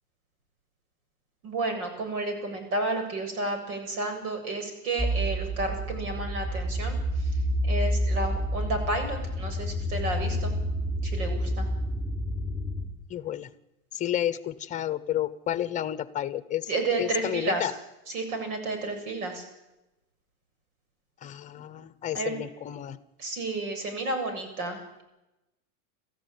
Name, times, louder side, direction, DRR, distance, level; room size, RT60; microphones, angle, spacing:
voice 1, 1.4-7.0 7.6-10.5 11.0-11.7 16.7-17.7 18.1-19.4 22.1-22.4 23.2-25.0, right 2 dB, 90° right, 6 dB, 7.7 m, -31 dB
sound 1, 5.0-12.9, equal, 5° right, 4.9 m, -29 dB
voice 2, 13.1-13.5 13.9-16.7 17.0-17.7 21.2-23.0, left 11 dB, 15° left, 15 dB, 0.8 m, -31 dB
28.5 x 14.5 x 9.4 m, 0.95 s
supercardioid pair, 160°, 43 cm